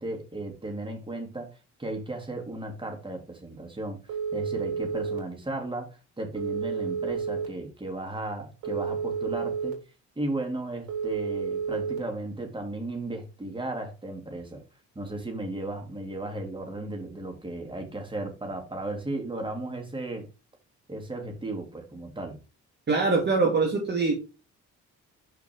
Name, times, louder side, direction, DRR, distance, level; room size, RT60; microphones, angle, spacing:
voice 1, 0.0-1.5 1.8-4.0 4.3-5.9 6.2-9.8 10.2-14.6 14.9-20.2 20.9-22.4, right 2 dB, 15° right, 2 dB, 3.1 m, -35 dB
Telephone, 4.1-5.2 6.4-7.5 8.6-9.7 10.9-12.0, right 6 dB, 70° right, 3.5 m, -30 dB
voice 2, 22.9-24.1, right 3 dB, 35° right, 0 dB, 2.2 m, -23 dB
6.4 x 5.0 x 4.8 m, 0.30 s
cardioid pair, 90°, 30 cm